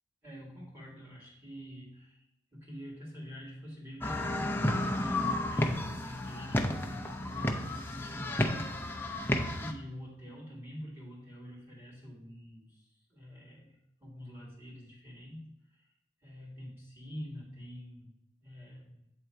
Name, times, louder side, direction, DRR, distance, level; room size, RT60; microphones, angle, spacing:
voice 1, 0.2-2.3 2.5-8.8 9.6-15.9 16.2-18.1 18.4-19.1, equal, 10° right, -4 dB, 2.2 m, -46 dB
sound 1, 4.0-9.7, left 1 dB, 10° left, 0.5 m, -32 dB
8.2 x 3.7 x 4.5 m, 0.83 s
head